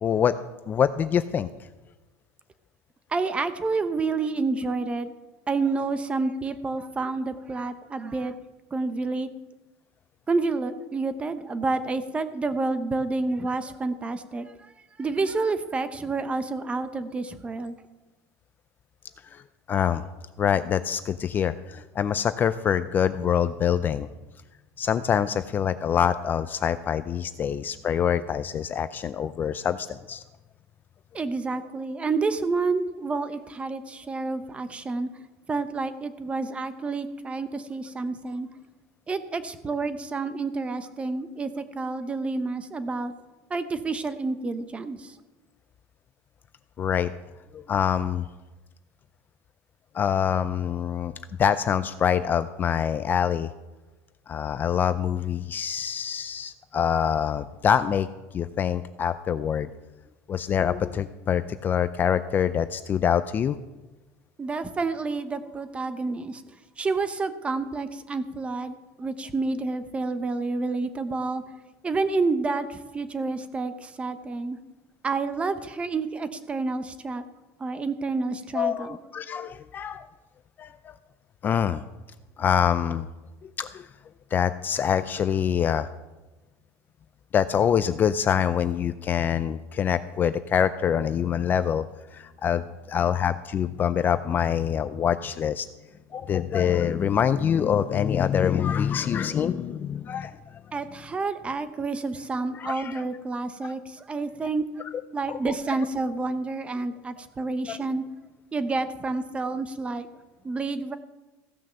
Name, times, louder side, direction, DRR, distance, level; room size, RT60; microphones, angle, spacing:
voice 1, 0.0-1.5 19.3-19.4 19.7-20.0 20.4-24.1 24.8-30.2 46.8-47.1 47.5-48.2 49.9-51.1 51.4-53.5 54.3-58.1 58.3-59.7 60.3-63.6 78.5-80.1 80.6-80.9 81.4-81.8 82.4-83.1 83.4-83.9 84.3-85.9 87.3-91.9 92.1-95.7 96.1-100.4 102.5-103.0 103.6-103.7 105.3-105.5 107.7-107.8, left 8 dB, 25° left, 13 dB, 0.4 m, -25 dB
voice 2, 3.1-5.1 5.5-8.3 8.7-9.3 10.3-14.5 15.0-17.7 31.1-35.1 35.5-38.5 39.1-43.1 43.5-45.1 64.4-66.4 66.8-71.4 71.8-74.6 75.0-77.2 77.6-79.0 100.7-104.6 105.1-108.0 108.5-110.1 110.4-111.0, right 3 dB, 15° right, 11 dB, 0.8 m, -29 dB
15.5 x 6.2 x 6.8 m, 1.1 s
cardioid pair, 150°, 7 cm